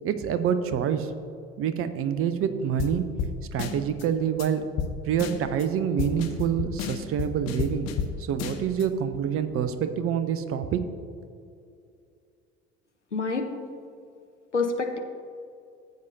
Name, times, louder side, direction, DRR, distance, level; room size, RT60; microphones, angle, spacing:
voice 1, 0.0-1.1 1.6-3.0 3.5-4.7 5.0-7.9 8.2-10.8, right 8 dB, 40° right, 10 dB, 0.7 m, -26 dB
sound 1, 2.8-2.9 3.2-3.3 3.6-4.0 4.4-4.5 4.8-4.9 5.2-5.6 6.0-8.1 8.4-8.8, left 7 dB, 45° left, 0.9 m, -31 dB
voice 2, 13.1-13.5 14.5-15.0, left 4 dB, 90° left, 4 dB, 0.6 m, -27 dB
14.5 x 7.8 x 2.7 m, 2.5 s
figure-of-eight pair, 55°, 34 cm